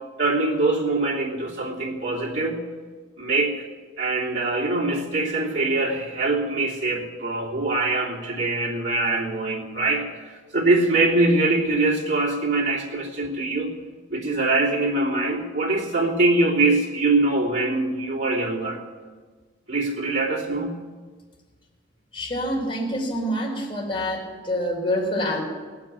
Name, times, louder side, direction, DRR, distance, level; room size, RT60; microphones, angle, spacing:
voice 1, 0.2-2.6 3.2-3.6 4.0-10.1 10.5-13.7 14.1-18.8 19.7-20.8, right 2 dB, 65° right, -4 dB, 3.0 m, -23 dB
voice 2, 22.1-25.4, equal, 30° left, -3 dB, 3.9 m, -26 dB
18.5 x 7.7 x 9.1 m, 1.5 s
head